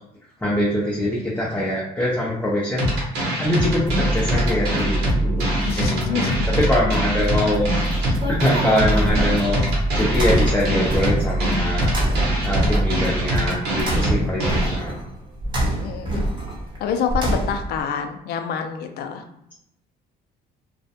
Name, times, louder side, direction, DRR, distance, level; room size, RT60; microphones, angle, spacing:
voice 1, 0.4-2.9 3.4-5.5 5.7-6.2 6.7-7.6 8.0-9.6 9.9-11.9 12.4-14.9, left 1 dB, 10° left, -5 dB, 0.5 m, -23 dB
sound 1, 2.8-14.8, equal, 80° right, 1.0 m, -24 dB
sound 2, 3.9-13.6, right 1 dB, 50° right, 0.4 m, -26 dB
voice 2, 5.6-6.6 14.2-14.3 15.8-16.2 16.8-19.2, left 7 dB, 70° left, 5 dB, 0.4 m, -27 dB
sound 3, 7.6-17.8, right 1 dB, 25° right, 0.8 m, -27 dB
2.4 x 2.1 x 2.7 m, 0.77 s
cardioid pair, 110°, 17 cm